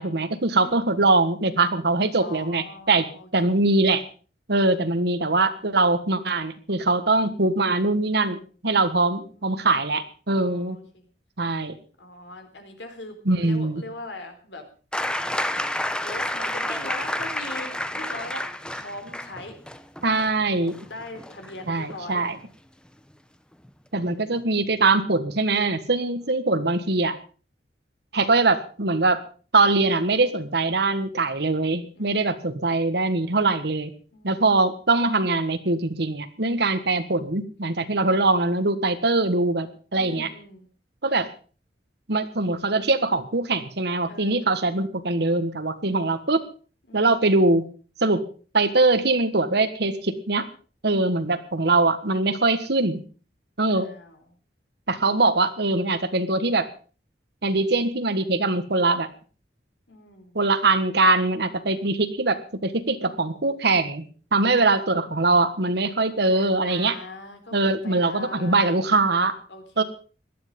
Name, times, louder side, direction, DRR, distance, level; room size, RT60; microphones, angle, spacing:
voice 1, 0.0-3.0 3.3-4.0 4.5-10.8 11.4-11.8 13.2-13.8 20.0-20.8 21.7-22.4 23.9-27.2 28.1-29.2 29.5-33.9 34.2-40.3 41.0-41.3 42.1-46.4 46.9-47.6 48.0-48.2 48.5-50.4 50.8-53.0 53.6-53.9 54.9-56.7 57.4-59.1 60.3-64.0 64.3-66.9 67.5-69.3 69.8-69.9, right 3 dB, 65° right, 11 dB, 1.5 m, -22 dB
voice 2, 0.5-0.9 2.2-3.6 9.0-9.7 10.3-11.1 12.0-14.6 15.3-15.5 16.0-18.5 18.7-19.6 20.8-22.3 26.2-26.8 32.0-32.5 34.1-34.4 40.0-40.7 44.0-44.5 46.9-47.3 50.9-51.2 53.7-54.2 59.9-60.4 66.3-68.9 69.5-69.8, left 2 dB, 80° left, 6 dB, 3.8 m, -41 dB
sound 1, 14.9-22.5 23.6-23.7, left 1 dB, 5° left, 0.9 m, -30 dB
18.0 x 12.0 x 5.4 m, 0.39 s
head